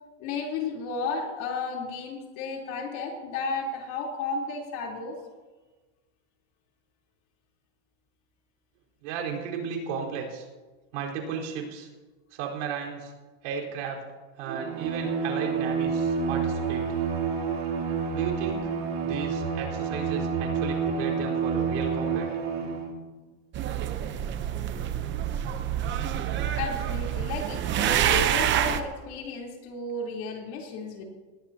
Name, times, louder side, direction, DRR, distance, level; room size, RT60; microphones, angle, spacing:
voice 1, 0.2-5.2 26.6-31.0, left 3 dB, 50° left, -1 dB, 3.9 m, -33 dB
voice 2, 9.0-10.5 10.9-11.9 12.3-13.1 13.4-14.0 14.4-16.9 18.1-18.7 19.0-22.4, right 6 dB, 70° right, -2 dB, 4.6 m, -34 dB
Bowed string instrument, 14.5-23.0, right 6 dB, 50° right, 3.7 m, -29 dB
sound 1, 23.5-28.8, right 10 dB, 30° right, 0.9 m, -27 dB
20.0 x 17.5 x 2.9 m, 1.3 s
supercardioid pair, 145°, 36 cm